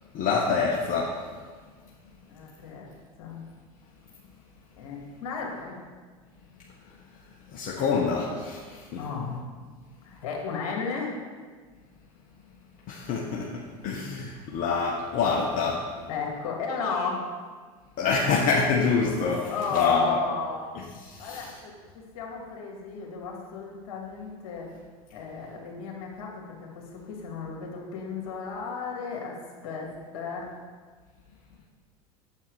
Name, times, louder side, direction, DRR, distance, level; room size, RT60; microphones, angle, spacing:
voice 1, 0.1-1.2 7.5-9.0 12.9-15.9 18.0-20.2 20.7-21.6, left 5 dB, 50° left, -2 dB, 1.3 m, -26 dB
voice 2, 2.3-2.9 3.2-3.4 4.8-5.8 9.0-9.4 10.0-11.2 16.1-17.3 19.5-20.7 21.2-24.7 25.1-29.4 29.6-30.5, left 5 dB, 70° left, 0 dB, 2.5 m, -34 dB
8.5 x 7.4 x 5.0 m, 1.5 s
hypercardioid pair, 80°, 18 cm